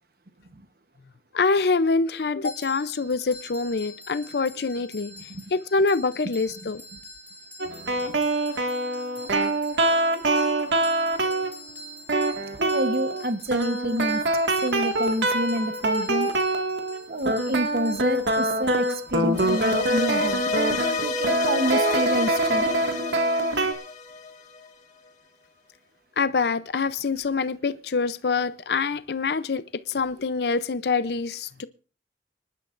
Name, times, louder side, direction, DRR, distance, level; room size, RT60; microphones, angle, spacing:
voice 1, 1.3-5.1 5.5-6.8 26.2-31.7, left 4 dB, 65° left, 0.6 m, -25 dB
sound 1, 2.4-21.2, equal, 10° left, 3.3 m, -45 dB
voice 2, 5.1-5.4 6.6-7.0 12.5-14.2 14.6-16.3 17.1-20.4 21.0-22.7, right 1 dB, 55° right, 1.1 m, -28 dB
sound 2, 7.6-11.6 12.1-13.2 13.5-17.0 17.3-23.7, right 2 dB, 85° right, 1.9 m, -24 dB
sound 3, 19.3-24.6, left 4 dB, 40° left, 2.0 m, -29 dB
25.0 x 11.5 x 2.5 m
head